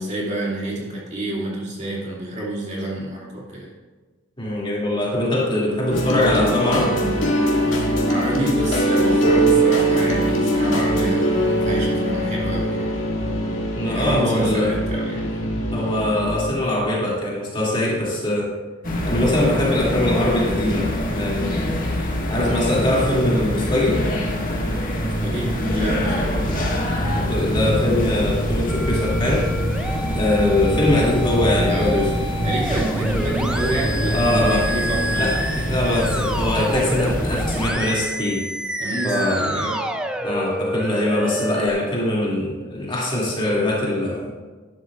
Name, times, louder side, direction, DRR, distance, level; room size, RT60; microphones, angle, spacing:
voice 1, 0.0-3.7 8.0-12.9 13.8-15.5 25.2-26.7 31.7-32.1 32.4-35.7 38.8-39.8, right 1 dB, 35° right, -5 dB, 2.4 m, -28 dB
voice 2, 4.4-7.0 13.7-14.7 15.1-15.3 15.7-18.5 19.1-24.0 27.1-29.5 30.1-32.1 34.1-34.6 35.2-35.3 35.7-38.5 39.0-39.6 40.2-44.3, left 1 dB, 25° left, -5 dB, 2.5 m, -22 dB
sound 1, 5.9-16.5, right 1 dB, 65° left, 2.3 m, -21 dB
sound 2, 18.8-37.7, equal, 40° left, 1.7 m, -24 dB
Musical instrument, 28.7-41.7, equal, 5° right, 0.5 m, -29 dB
12.0 x 11.0 x 2.5 m, 1.3 s
head